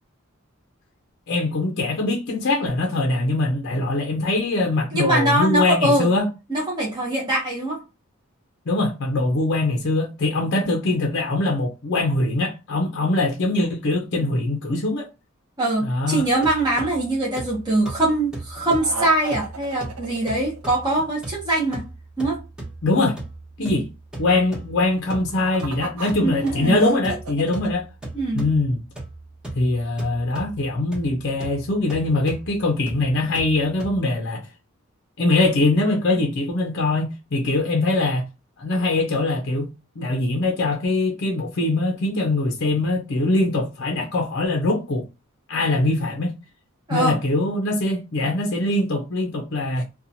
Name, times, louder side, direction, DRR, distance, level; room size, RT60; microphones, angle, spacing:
voice 1, 1.3-6.3 8.7-15.1 15.8-16.3 22.8-23.2 23.6-23.9 24.2-27.9 28.3-28.8 29.5-34.5 35.2-38.3 38.6-39.7 40.0-45.1 45.5-46.4 46.9-49.8, left 2 dB, 55° left, 0.5 m, -22 dB
voice 2, 4.9-6.1 6.5-7.8 15.6-21.8 22.2-22.4 23.6-23.8 26.2-26.8 28.1-28.4 46.9-47.2, right 1 dB, 20° right, 0.7 m, -22 dB
sound 1, 16.1-34.0, right 2 dB, 5° right, 1.0 m, -38 dB
sound 2, 18.8-21.0 25.1-27.7, right 2 dB, 85° right, 0.6 m, -31 dB
2.8 x 2.2 x 2.6 m
head